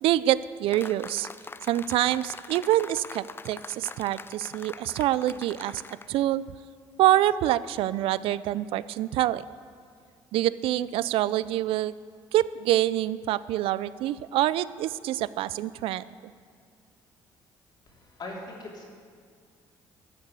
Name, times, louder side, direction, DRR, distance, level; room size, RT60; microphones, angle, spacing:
voice 1, 0.0-1.3 1.7-5.8 6.1-6.4 7.0-9.4 10.3-11.9 12.3-16.0, right 14 dB, 70° right, 18 dB, 0.4 m, -26 dB
sound 1, 0.7-6.1, left 4 dB, 25° left, 0.4 m, -43 dB
voice 2, 17.9-18.9, left 2 dB, 50° left, -2 dB, 3.7 m, -40 dB
13.0 x 6.6 x 7.8 m, 2.1 s
supercardioid pair, 70°, 10 cm